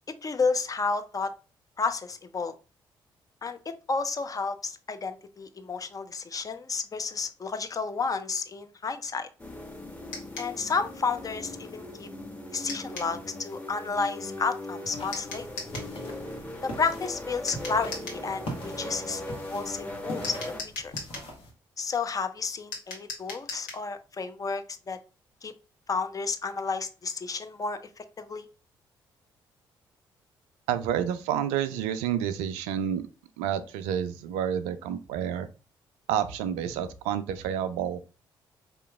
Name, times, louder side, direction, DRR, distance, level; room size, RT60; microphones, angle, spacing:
voice 1, 0.2-1.3 1.8-2.5 3.4-3.6 3.9-9.3 10.4-12.1 12.5-15.5 16.6-20.4 20.8-20.9 21.8-25.0 25.4-25.5 25.9-28.5, left 4 dB, 30° left, 9 dB, 0.6 m, -31 dB
sound 1, 9.4-20.6, left 1 dB, 10° left, 1.0 m, -39 dB
sound 2, 10.1-10.5 12.7-13.1 15.1-15.9 17.5-18.2 20.2-21.3 22.7-23.8, left 4 dB, 75° left, 1.1 m, -39 dB
sound 3, 14.8-21.5, equal, 50° left, 1.3 m, -42 dB
voice 2, 30.7-33.0 33.4-35.5 36.1-38.1, right 9 dB, 70° right, 11 dB, 0.4 m, -29 dB
5.0 x 2.8 x 2.3 m, 0.33 s
figure-of-eight pair, 40°, 11 cm